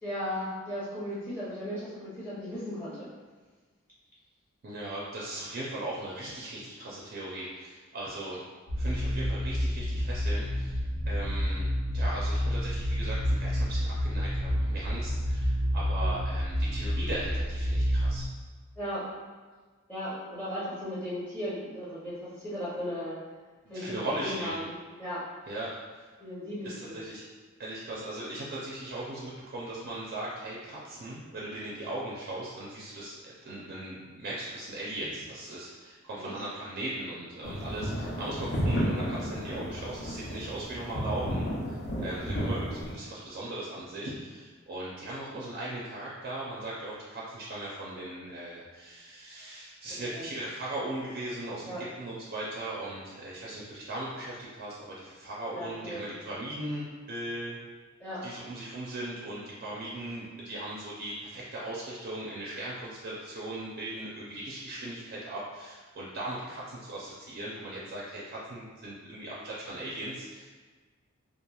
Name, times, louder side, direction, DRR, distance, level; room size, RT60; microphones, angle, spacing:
voice 1, 0.0-3.1 15.9-16.2 18.8-19.1 19.9-23.2 23.7-23.9 24.2-25.2 26.2-27.0 36.2-36.3 41.9-42.1 50.1-50.3 51.6-51.8 55.5-56.0 58.0-58.2, equal, 10° left, -10 dB, 0.6 m, -36 dB
voice 2, 4.6-8.4 8.8-10.8 11.1-11.7 11.9-18.2 23.7-24.6 25.5-26.0 26.6-27.2 27.6-57.6 58.2-70.5, right 1 dB, 50° right, -5 dB, 0.4 m, -38 dB
sound 1, 8.7-18.2, equal, 85° left, 0.8 m, -29 dB
sound 2, 37.4-42.9, equal, 50° left, 0.6 m, -32 dB
2.9 x 2.4 x 2.3 m, 1.5 s
head